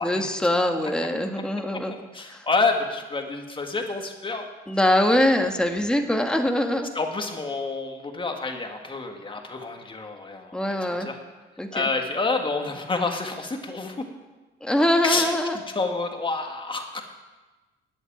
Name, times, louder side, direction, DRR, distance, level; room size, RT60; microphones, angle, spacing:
voice 1, 0.0-1.9 2.3-2.5 4.7-6.9 10.5-11.1 11.6-11.9 14.6-15.6, left 1 dB, 5° left, 4 dB, 1.4 m, -23 dB
voice 2, 2.1-4.5 6.9-11.2 11.7-14.1 15.0-15.4 15.8-17.0, left 3 dB, 25° left, 4 dB, 1.9 m, -28 dB
10.0 x 8.2 x 9.0 m, 1.2 s
cardioid pair, 90°, 20 cm